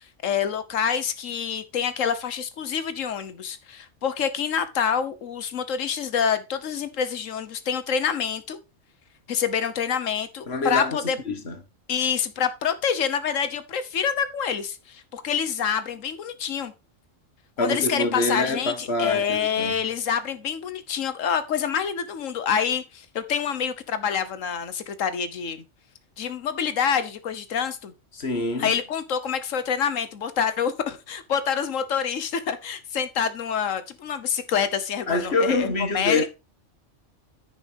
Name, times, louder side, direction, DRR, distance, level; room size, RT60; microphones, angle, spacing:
voice 1, 0.2-8.6 9.3-11.2 11.9-16.7 17.6-25.6 26.2-27.9 28.6-36.3, left 7 dB, 90° left, 1.4 m, -27 dB
voice 2, 10.5-11.0 11.3-11.6 17.6-19.7 28.1-28.7 35.1-36.3, left 2 dB, 55° left, 1.8 m, -25 dB
10.0 x 5.1 x 5.2 m
omnidirectional pair, 1.3 m